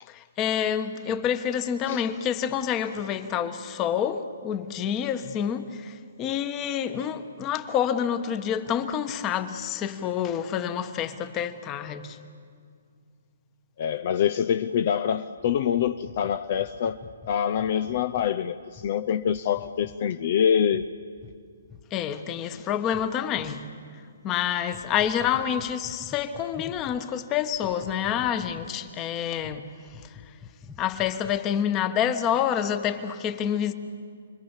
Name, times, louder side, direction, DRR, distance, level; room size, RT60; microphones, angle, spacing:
voice 1, 0.1-12.2 21.9-23.7 24.2-29.7 30.8-33.7, left 9 dB, 25° left, 1.3 m, -28 dB
voice 2, 13.8-17.0 17.3-20.9, left 8 dB, 50° left, 0.7 m, -25 dB
sound 1, 15.4-18.3 18.7-18.9 19.2-20.0 20.7-20.9 21.2-21.4 21.6-21.8 22.9-23.5 24.7-27.0 27.5-28.9 29.4-29.6 29.9-31.5, left 7 dB, 10° left, 1.1 m, -47 dB
29.0 x 22.0 x 7.4 m
hypercardioid pair, 140°, 0 cm